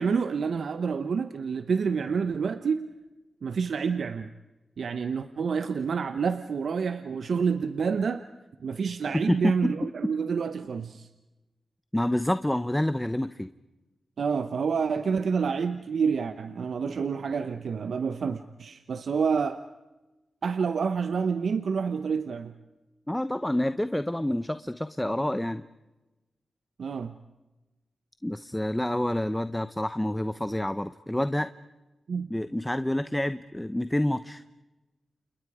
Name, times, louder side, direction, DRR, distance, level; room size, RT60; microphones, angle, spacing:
voice 1, 0.0-2.9 3.4-4.3 4.8-8.2 8.6-11.1 14.2-19.6 20.4-22.5 26.8-27.1 32.1-32.3, right 5 dB, 75° right, 10 dB, 1.0 m, -28 dB
voice 2, 9.3-9.7 11.9-13.5 23.1-25.6 28.2-31.5 32.3-34.4, left 1 dB, 10° left, 12 dB, 1.0 m, -28 dB
29.5 x 29.0 x 5.0 m, 1.1 s
cardioid pair, 45°, 0 cm